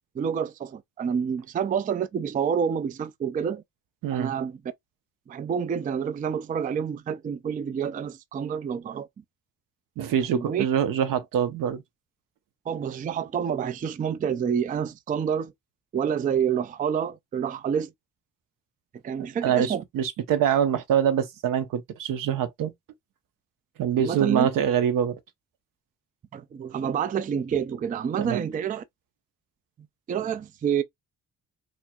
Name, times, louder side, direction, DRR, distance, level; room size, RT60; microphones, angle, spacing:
voice 1, 0.2-3.6 4.1-4.6 5.3-9.1 10.3-10.7 12.7-15.5 15.9-17.9 19.0-19.8 24.0-24.5 26.3-28.8 30.1-30.8, right 7 dB, 25° right, 0.3 m, -28 dB
voice 2, 10.0-11.8 19.2-22.7 23.8-25.2 28.2-28.4, right 8 dB, 75° right, 0.9 m, -25 dB
4.4 x 3.1 x 2.3 m
cardioid pair, 115°, 33 cm